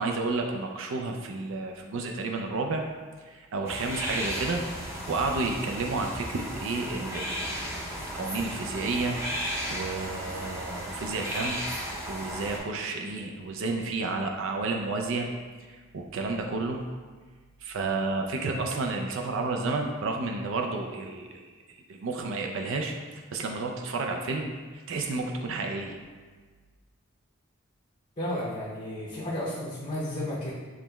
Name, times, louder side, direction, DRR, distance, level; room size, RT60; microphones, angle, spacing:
voice 1, 0.0-2.8 3.2-7.6 7.9-9.2 9.7-11.6 12.1-15.3 15.7-16.8 17.6-21.5 21.9-22.9 23.3-26.0, right 3 dB, 65° right, 2 dB, 0.4 m, -31 dB
sound 1, 3.6-12.6, equal, 10° right, 0.6 m, -35 dB
voice 2, 28.2-30.5, left 1 dB, 35° left, -7 dB, 0.7 m, -32 dB
7.1 x 3.0 x 2.3 m, 1.4 s
head